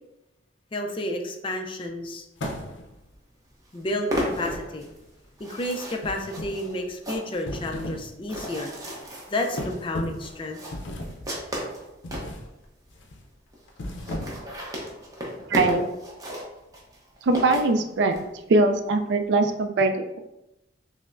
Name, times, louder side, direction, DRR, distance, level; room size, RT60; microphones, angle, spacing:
voice 1, 0.7-2.3 3.7-4.9 5.4-8.7 9.3-10.6, left 1 dB, 30° left, 4 dB, 0.4 m, -31 dB
sound 1, 2.4-3.1 4.1-5.0 6.0-6.7 7.3-8.1 8.5-8.7 9.6-10.3 10.7-11.3 12.0-12.5 12.9-13.2 13.7-14.6, left 1 dB, 80° left, 0.5 m, -35 dB
sound 2, 3.1-3.2 3.5-12.3 12.9-13.0 13.2-13.3 13.5-13.6 13.9-18.2, equal, 20° right, 0.7 m, -35 dB
voice 2, 15.5-15.9 17.2-18.2 18.5-20.2, right 2 dB, 65° right, 6 dB, 0.3 m, -21 dB
5.4 x 2.0 x 2.5 m, 0.91 s
head